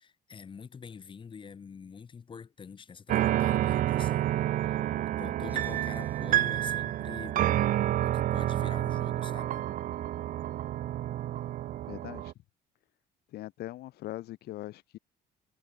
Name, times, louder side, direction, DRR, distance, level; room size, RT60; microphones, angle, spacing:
voice 1, 0.0-4.8 5.2-7.4 8.0-9.6, left 6 dB, 30° left, 1.1 m, -46 dB
sound 1, 3.1-12.3, right 13 dB, 55° right, 0.5 m, -29 dB
sound 2, 5.5-7.8, right 2 dB, 10° right, 7.9 m, -65 dB
voice 2, 11.9-12.3 13.3-15.0, left 15 dB, 70° left, 0.9 m, -41 dB
cardioid pair, 110°, 17 cm